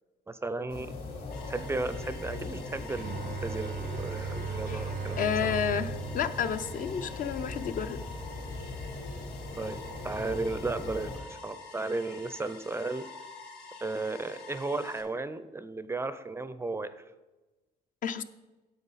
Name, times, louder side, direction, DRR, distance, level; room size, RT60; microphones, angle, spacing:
voice 1, 0.3-0.9 1.5-5.5 9.6-13.1 13.8-17.0, right 3 dB, 15° right, 13 dB, 0.5 m, -35 dB
sound 1, 0.7-11.2, left 2 dB, 70° left, 3.5 m, -40 dB
sound 2, 1.3-15.0, left 4 dB, 85° left, 1.9 m, -48 dB
Bowed string instrument, 2.9-8.6, right 7 dB, 65° right, 0.6 m, -39 dB
voice 2, 4.7-8.0 18.0-18.2, left 8 dB, 50° left, 10 dB, 0.6 m, -31 dB
9.5 x 8.3 x 4.1 m, 1.1 s
cardioid pair, 110°, 17 cm